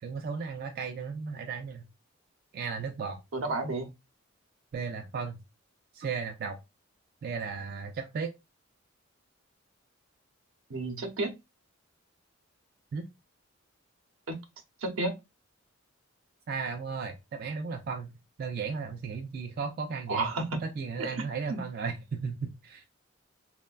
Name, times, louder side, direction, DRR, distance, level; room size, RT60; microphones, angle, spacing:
voice 1, 0.0-1.8 2.5-3.2 4.7-5.4 5.9-6.6 7.2-8.3 12.9-13.1 16.5-18.1 18.4-20.3 20.6-22.8, right 5 dB, 50° right, 0.3 m, -35 dB
voice 2, 3.3-3.9 10.7-11.3 14.3-14.4 14.8-15.2 20.1-20.6 21.0-21.6, right 2 dB, 80° right, 0.6 m, -32 dB
3.1 x 2.1 x 2.3 m
head